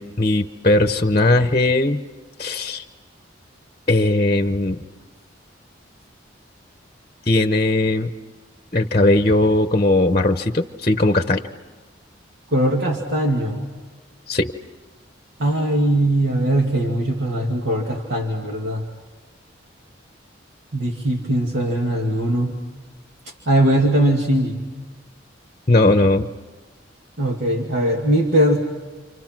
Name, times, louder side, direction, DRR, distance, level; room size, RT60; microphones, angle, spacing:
voice 1, 0.0-2.0 2.4-2.8 3.9-4.8 7.3-8.1 8.7-11.4 14.3-14.5 25.7-26.3, left 2 dB, 30° left, 7 dB, 0.9 m, -18 dB
voice 2, 12.5-13.6 15.4-18.8 20.7-22.6 23.5-24.6 27.2-28.6, right 1 dB, 65° right, 0 dB, 2.5 m, -20 dB
29.5 x 27.5 x 6.1 m, 1.3 s
head